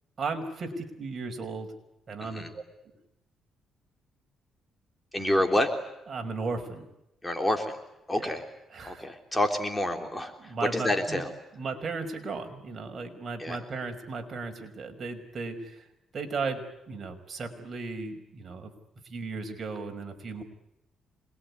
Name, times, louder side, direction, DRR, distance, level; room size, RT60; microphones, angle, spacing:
voice 1, 0.2-1.7 2.1-2.6 5.2-5.4 6.1-6.9 8.1-8.3 8.7-9.0 10.4-11.2 11.6-15.9 16.1-18.7 19.0-20.4, right 4 dB, 45° right, 5 dB, 5.3 m, -36 dB
voice 2, 5.1-5.7 7.2-7.8 8.1-8.4 8.8-11.3 13.4-13.6, left 1 dB, 10° left, 5 dB, 3.3 m, -28 dB
27.0 x 21.5 x 9.8 m, 0.88 s
cardioid pair, 90°, 0 cm